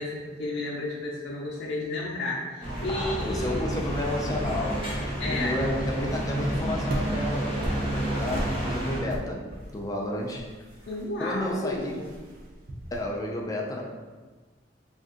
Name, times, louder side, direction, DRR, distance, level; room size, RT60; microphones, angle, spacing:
voice 1, 0.0-3.6 5.2-5.6 10.9-12.0, left 2 dB, 80° left, -4 dB, 0.5 m, -32 dB
sound 1, 2.6-9.0, right 1 dB, 30° right, 0.9 m, -30 dB
voice 2, 2.9-5.0 5.3-10.5 11.2-11.9 12.9-13.8, left 1 dB, 20° left, -1 dB, 0.3 m, -32 dB
sound 2, 6.1-13.1, right 1 dB, 50° right, 0.5 m, -39 dB
2.5 x 2.5 x 3.6 m, 1.3 s
head